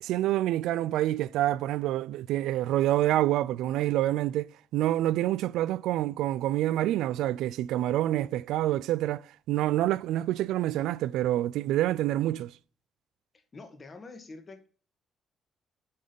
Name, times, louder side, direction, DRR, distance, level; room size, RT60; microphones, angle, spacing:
voice 1, 0.0-12.5, right 14 dB, 90° right, 0.3 m, -27 dB
voice 2, 13.5-14.7, left 3 dB, 40° left, 1.8 m, -46 dB
8.5 x 3.9 x 6.9 m
cardioid pair, 90°, 0 cm